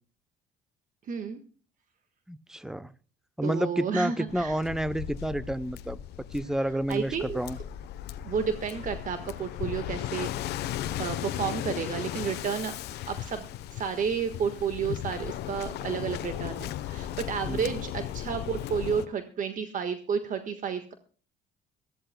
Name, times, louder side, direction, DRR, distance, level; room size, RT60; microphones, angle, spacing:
voice 1, 1.1-1.4 3.4-4.6 6.9-7.4 8.2-10.3 11.0-12.7 13.1-20.9, right 6 dB, 50° right, 8 dB, 1.5 m, -31 dB
voice 2, 2.3-2.9 3.4-6.0 6.3-7.6 17.5-17.7, right 1 dB, 5° right, 15 dB, 0.7 m, -30 dB
Waves surf, 4.3-19.1, left 12 dB, 80° left, 0.9 m, -36 dB
22.5 x 14.5 x 2.2 m, 0.39 s
cardioid pair, 110°, 17 cm